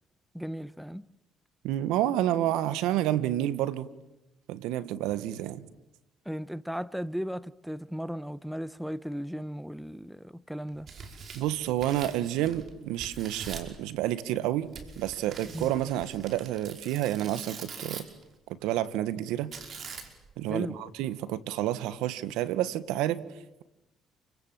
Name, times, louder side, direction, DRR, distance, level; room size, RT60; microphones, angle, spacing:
voice 1, 0.3-1.1 6.2-10.9 15.5-15.7 20.5-20.8, equal, ahead, 1.1 m, -36 dB
voice 2, 1.6-3.9 4.5-5.7 11.3-18.1 18.6-19.5 20.4-23.2, right 13 dB, 80° right, 1.4 m, -29 dB
Tearing, 10.7-12.7 13.0-13.8 14.7-18.2 19.5-20.3, right 5 dB, 55° right, 5.3 m, -43 dB
29.0 x 25.0 x 7.6 m
supercardioid pair, 65°, 0 cm